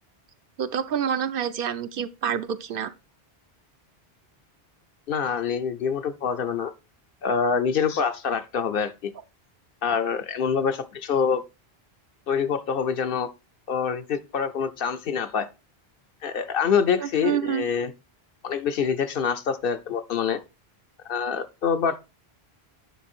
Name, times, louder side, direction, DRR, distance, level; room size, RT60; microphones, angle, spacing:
voice 1, 0.6-2.9 17.0-17.7, right 8 dB, 65° right, 0.7 m, -27 dB
voice 2, 5.1-6.7 7.2-9.1 9.8-11.4 12.3-13.3 13.7-15.5 16.2-17.9 18.4-20.4 21.1-22.0, left 6 dB, 65° left, 0.8 m, -25 dB
9.2 x 3.9 x 4.4 m
omnidirectional pair, 1.1 m